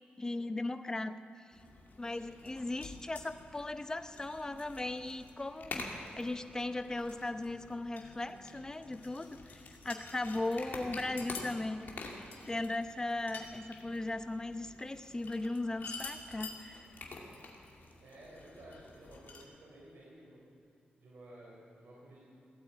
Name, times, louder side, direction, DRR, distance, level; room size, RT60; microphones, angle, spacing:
voice 1, 0.2-1.2 2.0-11.9 12.5-16.9, left 2 dB, 20° left, 10 dB, 0.7 m, -37 dB
sound 1, 1.5-19.4, left 3 dB, 65° left, 2.3 m, -48 dB
voice 2, 18.0-20.4 21.0-22.2, right 1 dB, 75° right, -6 dB, 3.7 m, -54 dB
17.5 x 8.7 x 8.2 m, 2.9 s
cardioid pair, 100°, 3 cm